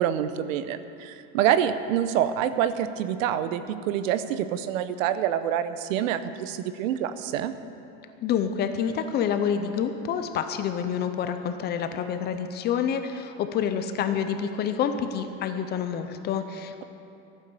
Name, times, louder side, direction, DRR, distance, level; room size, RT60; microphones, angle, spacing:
voice 1, 0.0-7.5, right 10 dB, 70° right, 12 dB, 0.9 m, -26 dB
voice 2, 8.2-16.8, left 8 dB, 25° left, 8 dB, 0.5 m, -28 dB
14.5 x 9.2 x 6.9 m, 2.8 s
supercardioid pair, 155°, 41 cm